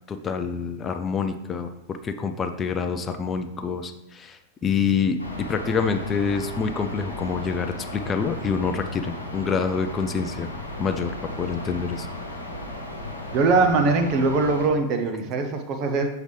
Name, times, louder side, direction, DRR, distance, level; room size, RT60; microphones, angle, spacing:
voice 1, 0.0-10.5 10.8-12.1, left 5 dB, 20° left, 7 dB, 0.4 m, -27 dB
sound 1, 5.2-14.7, left 1 dB, 85° left, 0.9 m, -35 dB
voice 2, 13.3-16.1, right 3 dB, 40° right, 5 dB, 0.6 m, -21 dB
6.4 x 4.8 x 3.2 m, 0.86 s
figure-of-eight pair, 90°, 0 cm